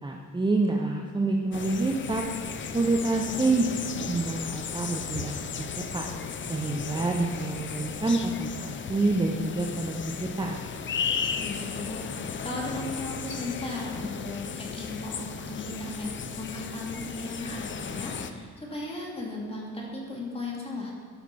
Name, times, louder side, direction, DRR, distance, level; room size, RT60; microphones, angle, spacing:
voice 1, 0.0-2.3 2.7-3.6 4.1-5.7 5.9-6.1 6.5-10.6, right 2 dB, 15° right, 1 dB, 0.7 m, -27 dB
sound 1, 1.5-18.3, left 6 dB, 40° left, 0.6 m, -35 dB
voice 2, 3.1-3.6 11.3-20.9, left 2 dB, 20° left, -3 dB, 2.7 m, -36 dB
12.0 x 5.9 x 4.2 m, 2.1 s
cardioid pair, 90°, 30 cm